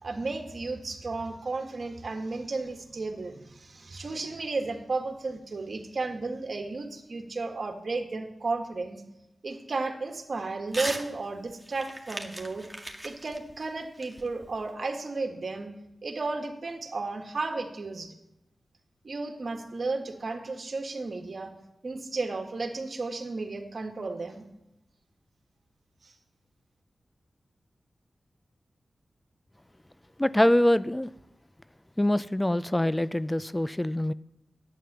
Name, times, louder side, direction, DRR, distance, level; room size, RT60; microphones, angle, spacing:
voice 1, 0.0-9.0 9.4-12.7 13.0-15.7 16.0-18.1 19.0-21.5 21.8-24.4 26.0-26.1, right 3 dB, 65° right, 5 dB, 1.7 m, -33 dB
Crumpling crinkling / Tearing, 10.7-11.1 11.4-14.7, right 1 dB, 10° right, 1.9 m, -38 dB
voice 2, 30.2-31.1 32.0-34.1, left 1 dB, 15° left, 17 dB, 0.4 m, -24 dB
11.0 x 9.5 x 6.8 m, 0.87 s
cardioid pair, 45°, 0 cm